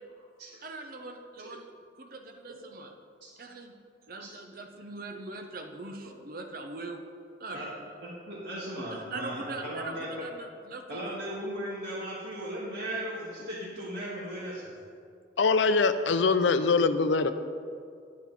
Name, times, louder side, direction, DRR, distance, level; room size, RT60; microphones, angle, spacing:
voice 1, 0.6-1.7 2.0-2.9 3.4-3.7 4.1-7.0 7.4-7.9 8.9-11.0, right 3 dB, 50° right, 4 dB, 0.9 m, -41 dB
voice 2, 3.2-3.6 4.2-4.3 6.0-6.1 7.5-7.7 8.0-10.2 10.9-14.7, equal, 75° right, -10 dB, 2.1 m, -37 dB
voice 3, 15.4-17.3, left 4 dB, 80° left, 11 dB, 0.5 m, -23 dB
9.5 x 9.4 x 4.2 m, 2.3 s
head